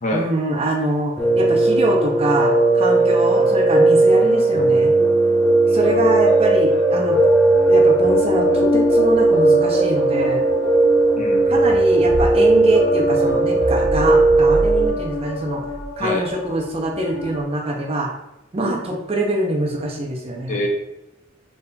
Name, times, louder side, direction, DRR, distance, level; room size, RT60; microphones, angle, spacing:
voice 1, 0.1-4.9 5.7-7.2 7.7-10.4 11.5-15.6 16.0-18.1 18.5-20.7, right 1 dB, 30° right, 1 dB, 0.5 m, -24 dB
Piano, 1.2-14.9, right 2 dB, 5° left, 0.8 m, -17 dB
voice 2, 5.6-6.0 11.2-11.5 16.0-16.3 20.5-20.7, left 1 dB, 35° left, 1 dB, 0.5 m, -26 dB
sound 1, 7.1-17.4, left 2 dB, 85° left, 0.8 m, -27 dB
4.1 x 3.6 x 2.2 m, 0.89 s
head